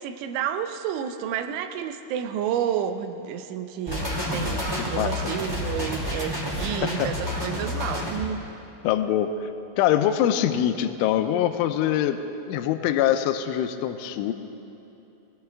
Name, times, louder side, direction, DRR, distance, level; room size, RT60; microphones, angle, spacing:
voice 1, 0.0-8.4, right 9 dB, 80° right, 8 dB, 2.9 m, -30 dB
sound 1, 3.9-8.2, left 1 dB, 20° right, 0.6 m, -29 dB
voice 2, 8.8-9.5 9.8-12.2 12.5-14.3, left 11 dB, 85° left, 8 dB, 3.0 m, -23 dB
20.5 x 16.5 x 3.5 m, 2.9 s
omnidirectional pair, 5.7 m